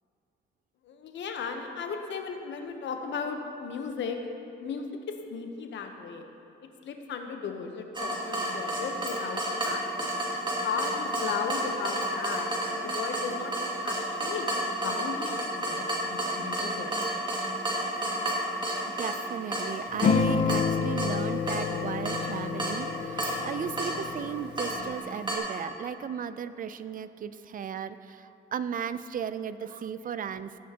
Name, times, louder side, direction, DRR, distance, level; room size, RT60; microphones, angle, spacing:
voice 1, 0.8-4.2 4.6-6.3 6.8-10.1 10.6-12.5 12.8-13.5 13.8-16.9, left 5 dB, 70° left, 5 dB, 0.9 m, -36 dB
Water tap faucet / Drip, 7.9-25.4, right 1 dB, 25° right, 2.0 m, -32 dB
voice 2, 19.0-30.6, right 8 dB, 45° right, 14 dB, 0.4 m, -35 dB
sound 1, 20.0-24.9, left 5 dB, 40° left, 0.7 m, -29 dB
15.5 x 8.5 x 2.9 m, 2.8 s
cardioid pair, 90°, 20 cm